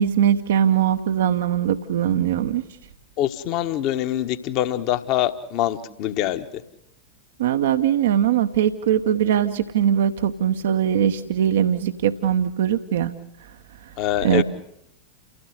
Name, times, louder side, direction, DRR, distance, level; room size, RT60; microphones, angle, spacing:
voice 1, 0.0-2.6 7.4-13.1 14.2-14.4, right 9 dB, 60° right, 9 dB, 1.0 m, -21 dB
voice 2, 3.2-6.6 14.0-14.4, left 12 dB, 40° left, 10 dB, 1.4 m, -24 dB
29.0 x 16.0 x 8.0 m, 0.79 s
figure-of-eight pair, 90°, 0 cm